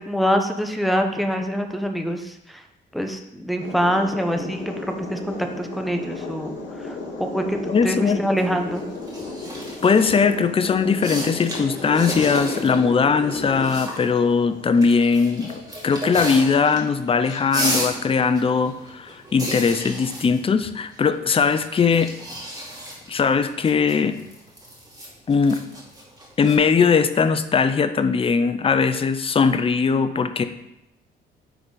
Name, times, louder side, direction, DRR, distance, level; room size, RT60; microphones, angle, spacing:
voice 1, 0.1-2.6 2.9-6.5 6.8-7.6 7.8-8.9, equal, ahead, 5 dB, 0.8 m, -25 dB
sound 1, 3.6-17.4, left 3 dB, 70° left, 1.8 m, -35 dB
voice 2, 7.7-8.2 9.8-22.1 23.1-24.1 25.3-25.6 26.4-30.4, left 5 dB, 30° left, 10 dB, 0.5 m, -20 dB
sound 2, 8.4-10.2 10.8-12.8 13.0-14.2 14.8-16.8 17.1-21.1 21.5-26.6, right 1 dB, 20° right, 2.2 m, -33 dB
9.3 x 3.9 x 3.9 m, 0.84 s
cardioid pair, 90°, 20 cm